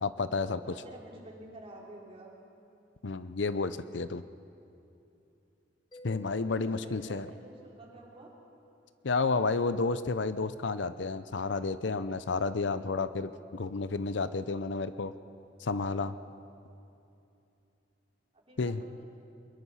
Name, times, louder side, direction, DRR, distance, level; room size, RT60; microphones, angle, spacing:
voice 1, 0.0-0.7 3.0-4.2 6.0-7.3 9.0-15.1 15.6-16.1 18.6-18.8, left 4 dB, 75° left, 13 dB, 0.7 m, -31 dB
voice 2, 0.6-2.4 6.6-8.3 18.3-19.1, right 1 dB, 35° right, -2 dB, 3.6 m, -50 dB
Mallet percussion, 5.9-9.4, left 2 dB, 25° left, 2.4 m, -57 dB
23.5 x 21.5 x 5.7 m, 2.8 s
head